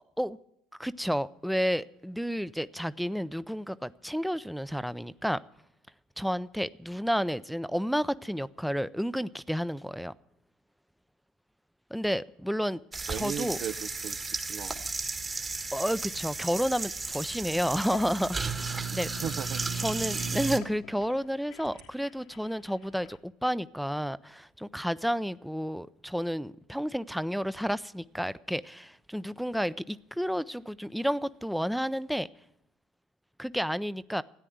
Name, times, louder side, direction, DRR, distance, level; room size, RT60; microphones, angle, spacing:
voice 1, 0.8-5.4 6.2-10.1 11.9-12.8 13.1-13.6 15.7-19.1 19.7-32.3 33.4-34.2, equal, ahead, 0.5 m, -31 dB
sound 1, 12.9-20.6, right 4 dB, 25° right, 1.4 m, -34 dB
voice 2, 13.1-14.8 19.2-19.6, right 10 dB, 60° right, 0.5 m, -37 dB
sound 2, 15.6-16.6 17.4-17.5 18.0-18.4 19.2-20.2 20.7-20.8 21.6-21.9, right 5 dB, 80° right, 2.8 m, -53 dB
sound 3, 17.9-23.2, left 9 dB, 80° left, 1.2 m, -49 dB
13.5 x 9.9 x 9.4 m
supercardioid pair, 90°, 0 cm